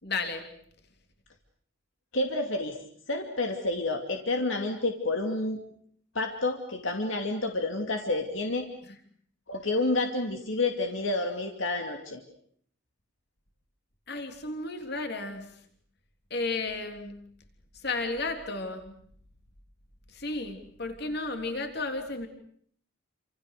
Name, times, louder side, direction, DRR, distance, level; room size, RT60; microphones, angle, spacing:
voice 1, 0.0-0.5 8.9-9.0 14.1-15.5 16.3-17.2 17.8-19.0 20.1-22.3, left 3 dB, 50° left, 6 dB, 3.4 m, -33 dB
voice 2, 2.1-2.8 3.1-5.6 6.1-8.7 9.5-12.2, left 2 dB, 65° left, 4 dB, 2.6 m, -29 dB
28.5 x 27.0 x 6.7 m, 0.62 s
head